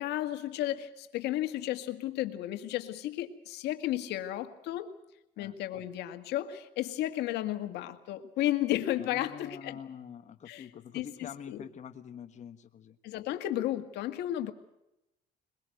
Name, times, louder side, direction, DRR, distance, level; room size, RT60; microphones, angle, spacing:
voice 1, 0.0-4.9 5.4-9.8 10.5-10.7 10.9-11.6 13.0-14.5, left 13 dB, 85° left, 8 dB, 1.9 m, -33 dB
voice 2, 9.0-13.0, left 8 dB, 45° left, 6 dB, 1.4 m, -45 dB
22.0 x 22.0 x 7.9 m, 0.88 s
cardioid pair, 110°, 17 cm